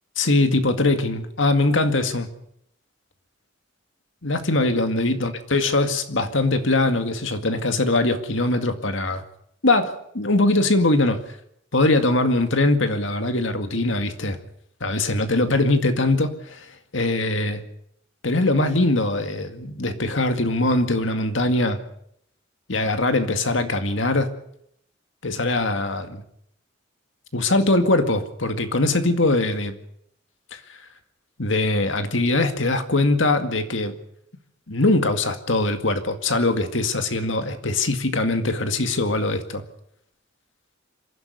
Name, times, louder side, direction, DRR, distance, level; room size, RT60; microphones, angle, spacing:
voice 1, 0.2-2.3 4.2-9.2 9.6-11.2 11.7-14.4 14.8-16.7 16.9-17.6 18.2-21.8 22.7-24.3 25.2-26.2 27.3-29.7 30.5-30.6 31.4-34.0 34.7-39.6, left 2 dB, 70° left, 8 dB, 2.1 m, -22 dB
26.5 x 11.5 x 9.3 m, 0.73 s
head